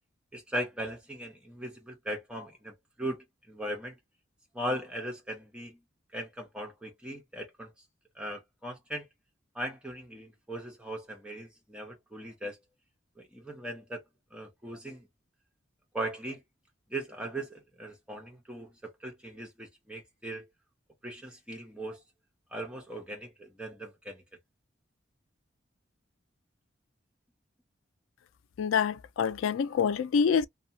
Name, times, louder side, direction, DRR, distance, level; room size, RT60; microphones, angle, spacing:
voice 1, 0.3-4.0 4.5-5.8 6.1-7.7 8.1-9.1 9.5-12.6 13.2-14.0 14.3-15.1 15.9-16.4 16.9-20.4 21.0-22.0 22.5-24.2, right 1 dB, 5° right, 0.7 m, -39 dB
voice 2, 28.6-30.4, left 6 dB, 85° left, 0.3 m, -26 dB
2.7 x 2.2 x 2.7 m
head